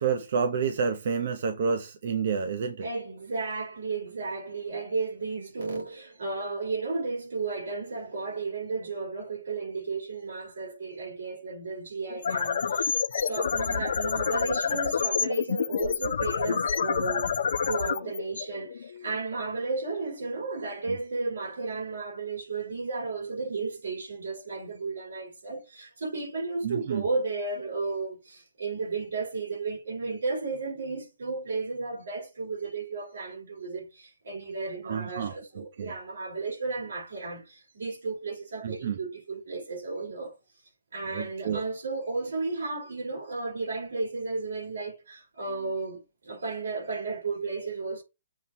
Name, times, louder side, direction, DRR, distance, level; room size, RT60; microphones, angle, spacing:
voice 1, 0.0-2.9 20.9-21.0 26.6-27.0 34.8-35.9 38.6-39.0 41.1-41.6, right 6 dB, 45° right, 0.9 m, -29 dB
voice 2, 2.8-17.3 17.6-40.4 40.9-48.0, right 3 dB, 80° right, 5.1 m, -33 dB
sound 1, 12.1-19.2, left 6 dB, 55° left, 0.9 m, -28 dB
7.4 x 3.3 x 5.8 m
hypercardioid pair, 175°, 0 cm